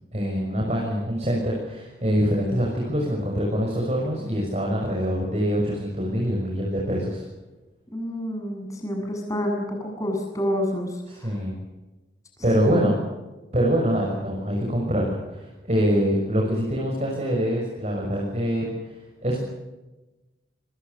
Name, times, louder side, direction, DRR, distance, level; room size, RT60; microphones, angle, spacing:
voice 1, 0.1-7.2 11.1-11.6 12.4-12.9 13.5-19.4, equal, 40° right, -2 dB, 6.5 m, -25 dB
voice 2, 7.9-10.9 11.2-11.3 12.6-12.9, equal, 20° left, 2 dB, 7.8 m, -28 dB
26.5 x 23.0 x 6.8 m, 1.1 s
head